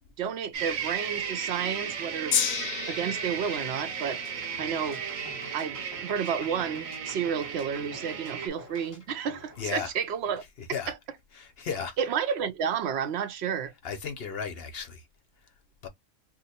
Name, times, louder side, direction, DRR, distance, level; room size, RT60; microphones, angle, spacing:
voice 1, 0.2-2.4 2.9-4.2 4.6-5.0 5.5-10.4 10.9-11.0 12.0-13.7, right 7 dB, 60° right, 0.8 m, -31 dB
sound 1, 0.5-8.5, right 7 dB, 85° right, 1.1 m, -35 dB
Gong, 2.3-8.7 9.4-9.5, left 9 dB, 90° left, 1.0 m, -35 dB
sound 2, 4.1-10.3, left 1 dB, 15° left, 0.9 m, -50 dB
voice 2, 9.6-9.9 10.4-10.9 11.3-12.2 13.8-15.1 15.8-15.9, left 6 dB, 55° left, 0.8 m, -35 dB
2.8 x 2.1 x 4.1 m
omnidirectional pair, 1.4 m